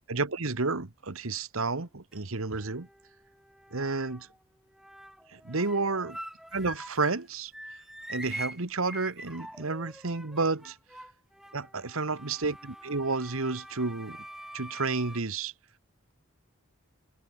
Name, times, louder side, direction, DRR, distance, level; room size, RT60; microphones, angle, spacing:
voice 1, 0.1-2.9 3.7-4.3 5.3-6.2 6.5-7.5 8.1-10.8 11.5-14.2 14.5-15.5, right 3 dB, 75° right, 1.4 m, -31 dB
sound 1, 1.8-2.2 2.6-4.4 4.7-7.3 7.5-15.2, equal, ahead, 1.6 m, -45 dB
head